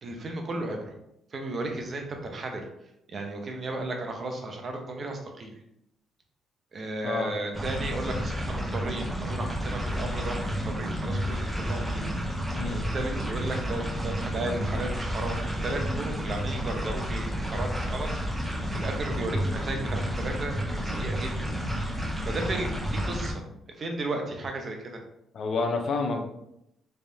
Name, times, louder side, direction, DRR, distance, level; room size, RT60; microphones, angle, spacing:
voice 1, 0.0-0.9 1.3-2.6 3.1-5.5 6.7-12.1 12.7-18.1 18.3-21.3 22.0-23.4 23.7-25.0, right 2 dB, 45° right, 2 dB, 0.7 m, -34 dB
sound 1, 7.5-23.3, equal, 5° right, 1.2 m, -31 dB
voice 2, 25.3-26.2, left 4 dB, 60° left, 3 dB, 0.6 m, -28 dB
3.4 x 3.2 x 2.7 m, 0.80 s
cardioid pair, 90°, 0 cm